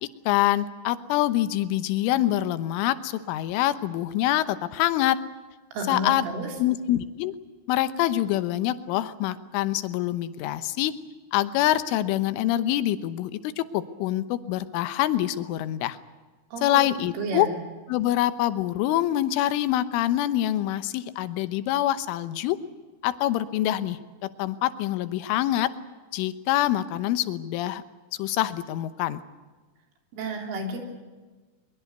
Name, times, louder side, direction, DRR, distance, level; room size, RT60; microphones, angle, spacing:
voice 1, 0.0-5.2 5.9-6.3 6.6-7.4 7.7-10.9 11.3-16.0 16.6-17.5 17.9-22.6 23.0-24.0 24.4-25.7 26.1-27.8 28.2-29.2, left 13 dB, 80° left, 13 dB, 3.4 m, -25 dB
voice 2, 5.7-6.5 16.5-17.5 30.1-30.8, right 2 dB, 75° right, 3 dB, 6.0 m, -32 dB
23.0 x 22.5 x 8.1 m, 1.3 s
omnidirectional pair, 5.7 m